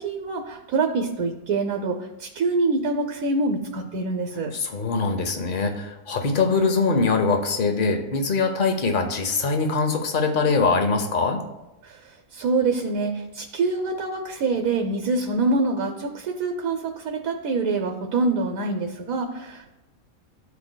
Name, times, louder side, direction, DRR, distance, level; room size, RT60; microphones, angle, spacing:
voice 1, 0.0-4.5 11.8-12.0 12.3-19.7, right 3 dB, 75° right, 3 dB, 1.1 m, -25 dB
voice 2, 4.5-11.4, left 4 dB, 40° left, 5 dB, 0.9 m, -23 dB
13.5 x 4.8 x 2.2 m, 0.99 s
omnidirectional pair, 1.5 m